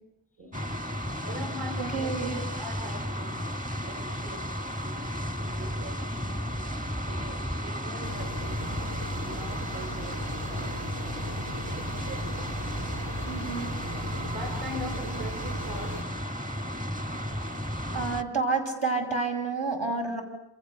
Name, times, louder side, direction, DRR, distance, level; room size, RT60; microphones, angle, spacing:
voice 1, 0.4-0.8 1.2-4.5 4.7-12.6 14.1-16.1 16.9-17.2, right 1 dB, 50° right, 3 dB, 4.8 m, -43 dB
sound 1, 0.5-18.2, equal, 15° right, 1.3 m, -33 dB
voice 2, 1.8-2.4 13.2-13.7 17.9-20.2, right 4 dB, 70° right, 1 dB, 6.5 m, -29 dB
sound 2, 8.0-16.0, equal, 90° right, 1.4 m, -40 dB
29.0 x 27.5 x 6.7 m, 0.78 s
wide cardioid pair, 90°, 46 cm